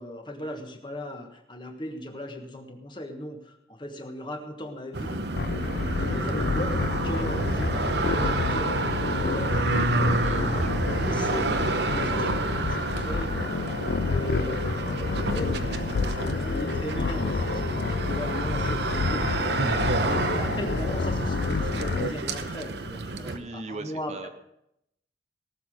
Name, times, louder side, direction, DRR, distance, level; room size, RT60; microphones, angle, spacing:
voice 1, 0.0-5.2 6.0-6.8 7.0-10.2 10.9-13.3 13.8-17.6 17.9-19.3 20.0-24.3, left 1 dB, 25° left, 4 dB, 1.4 m, -38 dB
sound 1, 4.9-23.4, right 3 dB, 75° right, 0.9 m, -29 dB
sound 2, 5.4-22.1, left 4 dB, 65° left, 0.4 m, -29 dB
voice 2, 10.1-11.0 23.2-24.3, right 3 dB, 40° right, 9 dB, 0.7 m, -41 dB
18.0 x 6.9 x 6.3 m, 0.80 s
head